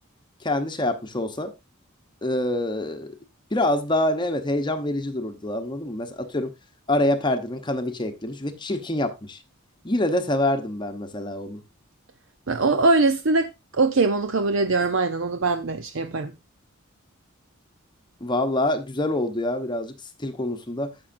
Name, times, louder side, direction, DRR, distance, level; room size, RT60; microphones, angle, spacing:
voice 1, 0.4-1.5 2.2-3.1 3.5-6.5 6.9-9.4 9.8-11.6 18.2-20.9, left 1 dB, 20° left, 0.9 m, -26 dB
voice 2, 12.5-16.3, right 3 dB, 65° right, 0.7 m, -22 dB
14.5 x 6.2 x 2.6 m
head